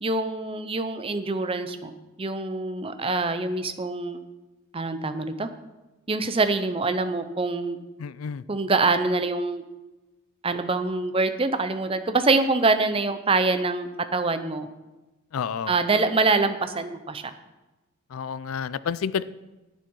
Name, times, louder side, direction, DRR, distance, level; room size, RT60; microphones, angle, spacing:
voice 1, 0.0-1.9 2.2-4.2 4.7-5.5 6.1-7.8 8.5-9.6 10.4-14.7 15.7-17.3, right 3 dB, 25° right, 9 dB, 0.7 m, -25 dB
voice 2, 8.0-8.4 15.3-15.7 18.1-19.2, left 7 dB, 90° left, 17 dB, 0.4 m, -30 dB
10.5 x 9.0 x 4.6 m, 1.1 s
head